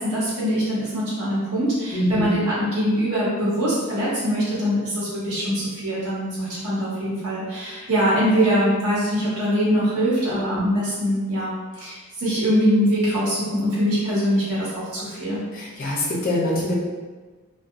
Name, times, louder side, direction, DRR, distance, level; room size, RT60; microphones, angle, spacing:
voice 1, 0.0-15.4, equal, 80° right, -8 dB, 1.0 m, -23 dB
voice 2, 1.9-2.3 10.5-10.6 15.5-16.7, left 1 dB, 40° left, -5 dB, 0.6 m, -24 dB
2.7 x 2.2 x 2.5 m, 1.3 s
head